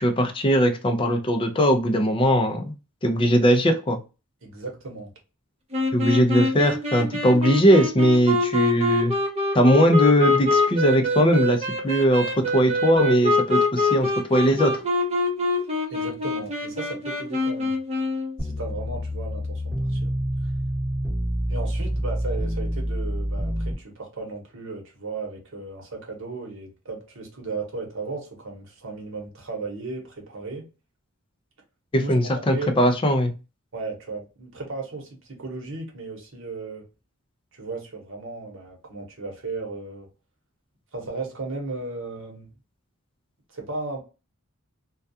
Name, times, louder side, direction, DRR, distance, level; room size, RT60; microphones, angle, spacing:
voice 1, 0.0-2.7 3.0-4.0 5.9-9.1 9.5-14.8 31.9-33.3, equal, 25° left, 0.4 m, -20 dB
voice 2, 4.4-5.1 15.9-17.8 18.4-20.1 21.5-30.7 31.9-32.7 33.7-36.8 37.5-40.1 40.9-42.5 43.5-44.0, right 3 dB, 65° right, 1.0 m, -35 dB
sound 1, 5.7-18.3, left 2 dB, 30° right, 0.8 m, -25 dB
sound 2, 18.4-23.7, equal, ahead, 1.1 m, -27 dB
2.3 x 2.2 x 2.6 m
head